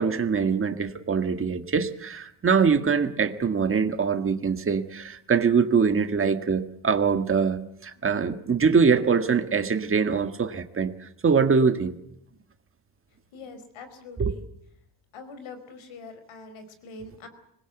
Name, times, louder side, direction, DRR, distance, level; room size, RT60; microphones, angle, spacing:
voice 1, 0.0-10.9 11.2-12.0 14.2-14.4, right 5 dB, 25° right, 8 dB, 1.7 m, -23 dB
voice 2, 13.3-14.4 15.1-17.3, left 3 dB, 75° left, 10 dB, 4.9 m, -43 dB
25.5 x 20.5 x 8.1 m, 0.76 s
cardioid pair, 165°, 48 cm